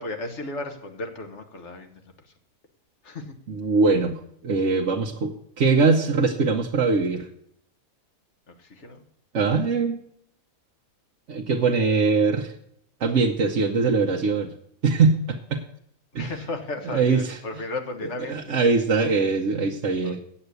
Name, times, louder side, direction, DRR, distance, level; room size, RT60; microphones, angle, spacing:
voice 1, 0.0-2.0 3.0-3.3 8.5-9.0 16.2-18.4 20.0-20.2, left 2 dB, 55° left, 5 dB, 1.6 m, -34 dB
voice 2, 3.5-7.3 9.3-10.0 11.3-12.5 13.0-14.5 14.8-15.6 16.1-16.3 16.8-17.4 18.3-20.2, right 4 dB, 60° right, 0 dB, 1.2 m, -22 dB
8.8 x 7.9 x 8.2 m, 0.71 s
omnidirectional pair, 1.5 m